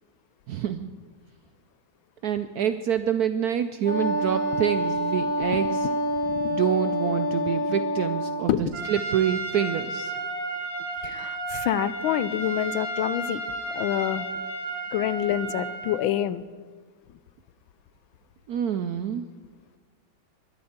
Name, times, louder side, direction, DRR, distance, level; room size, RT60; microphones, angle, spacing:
voice 1, 0.5-0.9 2.2-5.9 6.5-10.1 18.5-19.2, right 9 dB, 75° right, 10 dB, 0.9 m, -27 dB
Wind instrument woodwind instrument, 3.8-8.5, equal, 25° left, 2.3 m, -27 dB
Trumpet, 8.7-16.0, right 3 dB, 40° right, 3.8 m, -33 dB
voice 2, 11.0-13.4 13.7-14.2 14.9-16.4, left 11 dB, 85° left, 16 dB, 1.4 m, -27 dB
21.0 x 12.0 x 4.3 m, 1.5 s
omnidirectional pair, 2.2 m